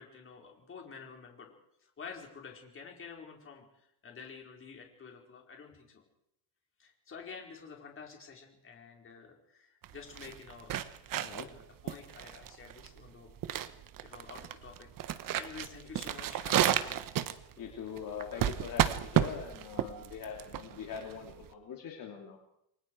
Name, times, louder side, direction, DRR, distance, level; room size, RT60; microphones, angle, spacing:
voice 1, 0.0-1.5 1.8-3.7 4.0-6.0 6.8-10.9 11.3-13.3 14.0-17.0, left 5 dB, 25° left, 1 dB, 4.9 m, -49 dB
sound 1, 9.8-21.5, right 11 dB, 45° right, 1.2 m, -32 dB
voice 2, 11.2-11.5 17.6-22.4, left 7 dB, 45° left, 1 dB, 3.2 m, -42 dB
29.5 x 23.5 x 4.8 m, 0.77 s
cardioid pair, 150°, 46 cm